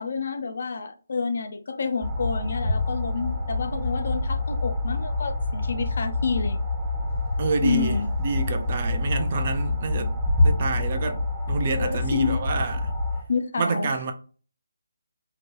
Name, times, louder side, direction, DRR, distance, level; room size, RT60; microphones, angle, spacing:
voice 1, 0.0-6.6 7.6-8.1 11.7-12.4 13.3-14.0, left 5 dB, 55° left, 0.4 m, -29 dB
sound 1, 2.0-13.2, left 2 dB, 10° right, 0.7 m, -26 dB
voice 2, 7.4-10.1 10.4-12.8 13.6-14.1, right 4 dB, 40° right, 0.4 m, -28 dB
2.9 x 2.2 x 2.9 m
figure-of-eight pair, 155°, 0 cm